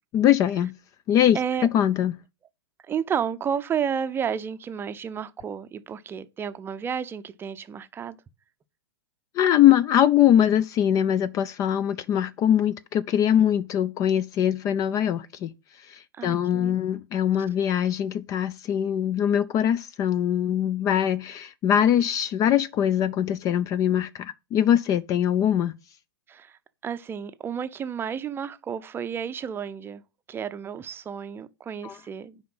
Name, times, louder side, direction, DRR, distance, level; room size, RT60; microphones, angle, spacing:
voice 1, 0.1-0.7 1.1-1.4 1.7-2.1 9.4-15.5 15.9-25.8 31.8-32.0, left 10 dB, 25° left, 0.4 m, -22 dB
voice 2, 1.3-1.7 2.9-8.2 16.2-16.8 26.3-30.0 30.3-32.4, right 7 dB, 15° right, 0.6 m, -31 dB
9.3 x 5.1 x 5.5 m
figure-of-eight pair, 110°, 13 cm